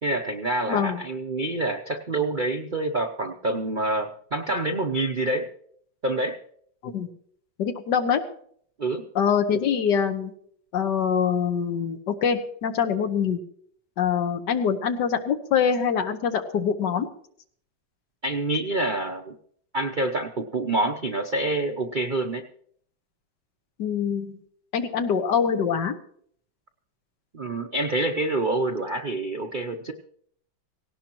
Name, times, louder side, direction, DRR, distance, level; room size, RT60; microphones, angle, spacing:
voice 1, 0.0-5.5 6.0-6.4 8.8-9.0 18.2-19.3 19.7-22.5 27.3-29.9, right 2 dB, 75° right, 4 dB, 0.4 m, -27 dB
voice 2, 0.7-1.0 6.8-7.1 7.6-8.2 9.1-10.3 10.7-13.4 14.0-17.1 23.8-24.4 24.7-25.9, left 7 dB, 65° left, 7 dB, 1.7 m, -24 dB
18.0 x 17.0 x 3.0 m, 0.63 s
omnidirectional pair, 2.1 m